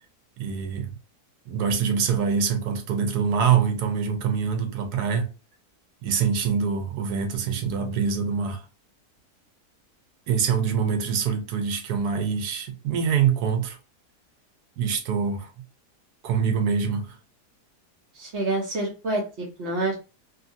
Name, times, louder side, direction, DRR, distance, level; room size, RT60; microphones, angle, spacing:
voice 1, 0.4-0.9 1.5-5.3 6.0-8.6 10.3-13.8 14.8-15.5 16.2-17.2, right 6 dB, 75° right, 1.2 m, -25 dB
voice 2, 18.1-19.9, right 2 dB, 55° right, 0.9 m, -27 dB
2.8 x 2.6 x 2.5 m
omnidirectional pair, 1.7 m